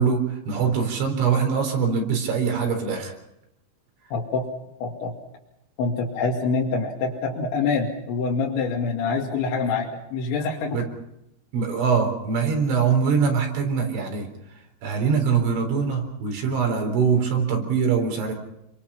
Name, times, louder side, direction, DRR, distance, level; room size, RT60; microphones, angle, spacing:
voice 1, 0.0-3.1 10.7-10.9 11.5-14.3 14.8-18.4, right 6 dB, 75° right, 2 dB, 6.5 m, -23 dB
voice 2, 4.1-4.5 4.8-5.1 5.8-10.8, left 4 dB, 70° left, -2 dB, 4.6 m, -25 dB
29.0 x 23.5 x 5.7 m, 0.82 s
omnidirectional pair, 5.5 m